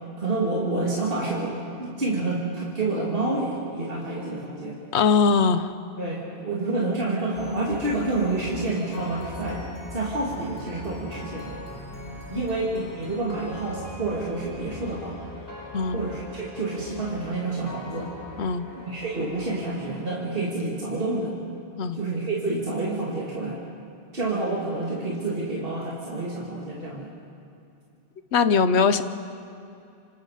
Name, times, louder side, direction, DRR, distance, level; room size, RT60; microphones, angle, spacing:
voice 1, 0.2-4.8 6.0-11.5 12.3-15.2 15.9-18.1 18.9-21.3 21.9-23.6 24.1-27.1, right 2 dB, 55° right, -5 dB, 2.8 m, -28 dB
voice 2, 4.9-5.7 12.3-12.4 15.7-16.0 18.4-18.6 21.8-22.0 28.3-29.0, left 5 dB, 80° left, 11 dB, 1.1 m, -21 dB
sound 1, 7.3-20.6, left 1 dB, 65° left, 5.2 m, -41 dB
27.5 x 26.0 x 5.0 m, 2.7 s
omnidirectional pair, 1.1 m